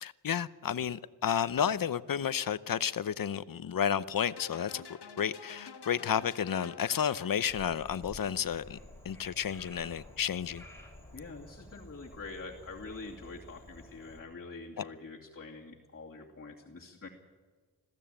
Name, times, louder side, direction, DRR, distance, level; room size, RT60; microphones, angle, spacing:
voice 1, 0.0-4.8 5.2-8.8 9.0-10.6 14.8-14.9, left 8 dB, 55° left, 0.8 m, -31 dB
sound 1, 4.2-7.7, left 6 dB, 80° left, 1.6 m, -49 dB
Frog, 7.5-14.2, left 1 dB, 5° left, 5.0 m, -51 dB
voice 2, 11.1-17.1, left 3 dB, 35° left, 2.5 m, -45 dB
21.0 x 15.5 x 8.8 m
wide cardioid pair, 95°, 39 cm